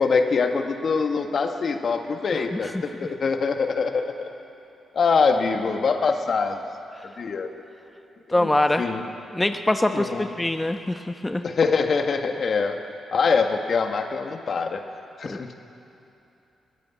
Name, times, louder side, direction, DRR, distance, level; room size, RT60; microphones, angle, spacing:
voice 1, 0.0-4.3 4.9-6.6 7.2-7.5 8.4-8.5 8.8-9.1 9.9-10.3 11.4-12.8 13.1-14.8 15.2-15.5, left 5 dB, 60° left, 5 dB, 1.7 m, -24 dB
voice 2, 2.3-2.8 8.3-8.9 9.3-11.4 15.3-15.4, left 1 dB, 15° left, 7 dB, 1.0 m, -24 dB
21.0 x 16.5 x 8.5 m, 2.8 s
supercardioid pair, 50°, 0 cm